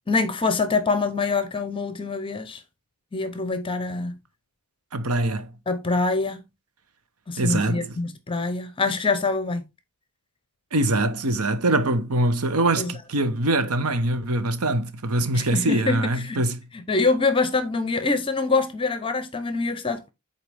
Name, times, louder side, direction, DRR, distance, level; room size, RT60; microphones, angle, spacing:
voice 1, 0.1-2.6 3.1-4.2 5.7-6.4 7.3-9.6 12.8-12.9 15.3-16.4 16.7-20.1, left 3 dB, 25° left, 0.8 m, -25 dB
voice 2, 4.9-5.5 7.4-7.8 10.7-16.6, right 2 dB, 75° right, 0.9 m, -23 dB
8.0 x 4.4 x 3.4 m
head